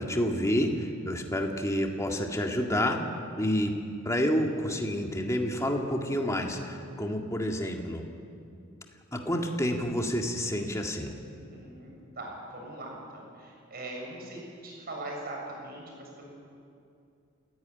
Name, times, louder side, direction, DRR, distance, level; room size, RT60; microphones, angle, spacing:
voice 1, 0.0-3.0 3.4-3.8 4.0-8.0 9.1-11.1, equal, 15° left, 2 dB, 2.0 m, -29 dB
voice 2, 11.3-16.4, right 2 dB, 50° right, -1 dB, 7.4 m, -41 dB
28.0 x 15.0 x 9.7 m, 2.5 s
head